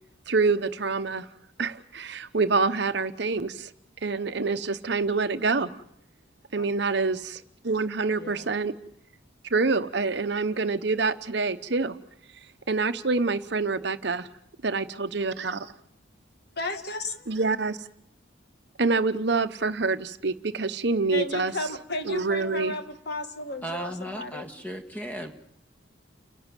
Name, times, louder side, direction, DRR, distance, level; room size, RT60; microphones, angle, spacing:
voice 1, 0.3-1.3 1.6-3.7 4.0-5.7 6.5-8.7 9.5-12.0 12.7-14.3 14.6-15.7 17.3-17.8 18.8-21.5 22.1-22.7, right 4 dB, 60° right, 11 dB, 0.9 m, -26 dB
voice 2, 16.6-17.3 21.1-24.5, left 2 dB, 55° left, 7 dB, 1.8 m, -34 dB
voice 3, 23.6-25.3, right 1 dB, 10° left, 5 dB, 1.7 m, -35 dB
29.5 x 11.5 x 9.0 m, 0.74 s
head